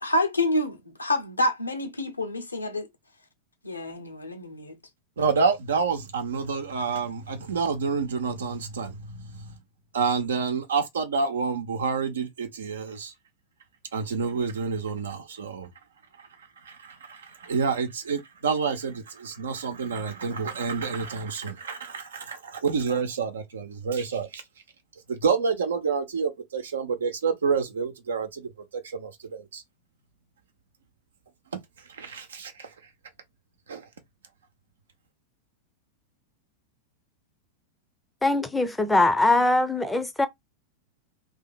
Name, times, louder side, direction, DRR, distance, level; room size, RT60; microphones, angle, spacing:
voice 1, 0.0-2.9 3.6-4.8, left 1 dB, 80° left, 0.9 m, -27 dB
voice 2, 5.2-9.5 9.9-13.1 13.9-15.7 16.6-24.4 25.1-29.6 31.5-31.6 31.9-32.7 33.7-33.9, right 5 dB, 65° right, 0.9 m, -28 dB
voice 3, 38.2-40.3, left 2 dB, 5° left, 0.7 m, -22 dB
2.9 x 2.7 x 4.1 m
figure-of-eight pair, 90°, 0 cm